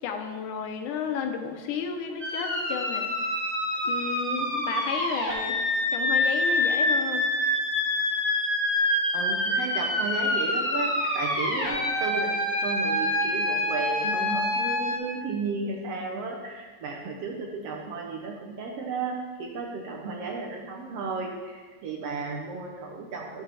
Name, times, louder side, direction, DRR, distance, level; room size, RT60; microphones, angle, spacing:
voice 1, 0.0-3.3 3.8-5.6 5.9-7.3, left 6 dB, 85° left, 4 dB, 2.3 m, -33 dB
sound 1, 2.2-15.0, left 1 dB, 30° right, 2.3 m, -26 dB
voice 2, 9.1-12.3 12.6-23.4, right 4 dB, 70° right, 0 dB, 1.6 m, -34 dB
13.0 x 5.9 x 3.4 m, 1.5 s
omnidirectional pair, 3.5 m